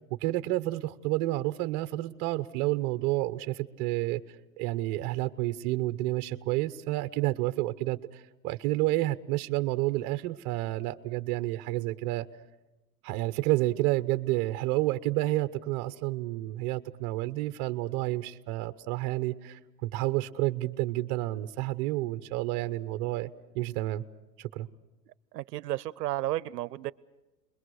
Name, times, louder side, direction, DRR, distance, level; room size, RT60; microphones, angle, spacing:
voice 1, 0.1-4.2 4.6-12.3 13.0-23.3 23.5-24.0 24.4-24.7, right 17 dB, 30° right, 12 dB, 0.8 m, -30 dB
voice 2, 25.3-26.9, right 15 dB, 70° right, 20 dB, 0.8 m, -32 dB
30.0 x 22.0 x 6.4 m, 1.0 s
supercardioid pair, 150°, 50 cm